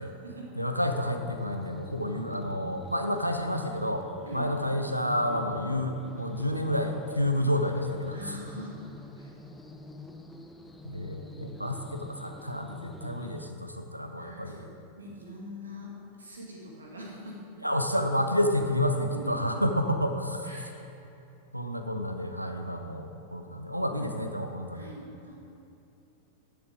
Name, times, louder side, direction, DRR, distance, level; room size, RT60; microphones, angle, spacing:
voice 1, 0.6-4.1 4.3-8.4 10.8-14.6 17.6-20.5 21.5-24.9, left 1 dB, 90° right, 5 dB, 0.7 m, -30 dB
sound 1, 0.8-13.5, left 2 dB, 5° left, 0.7 m, -46 dB
voice 2, 8.1-8.8 9.2-9.4 14.2-14.7 15.0-15.9 16.2-17.4 19.1-19.3 20.4-20.7 24.7-25.3, equal, 75° right, -3 dB, 2.1 m, -43 dB
10.5 x 6.8 x 5.0 m, 2.9 s
figure-of-eight pair, 90°, 0 cm